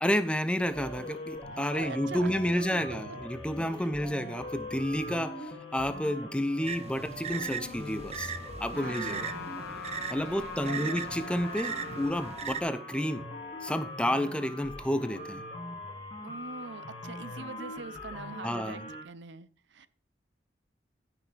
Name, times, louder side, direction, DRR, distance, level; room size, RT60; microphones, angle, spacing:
voice 1, 0.0-8.3 8.6-9.3 10.1-13.2 13.6-15.4 18.4-18.8, equal, 5° left, 0.6 m, -30 dB
sound 1, 0.7-19.0, left 1 dB, 30° left, 2.5 m, -42 dB
voice 2, 1.5-2.3 2.7-3.2 3.7-3.9 8.7-9.5 10.3-11.1 11.8-12.1 16.2-19.9, right 4 dB, 80° right, 0.6 m, -43 dB
sound 2, 6.6-12.6, right 7 dB, 35° right, 0.6 m, -39 dB
Trumpet, 8.7-12.4, left 3 dB, 60° left, 1.4 m, -43 dB
15.0 x 6.0 x 3.4 m
head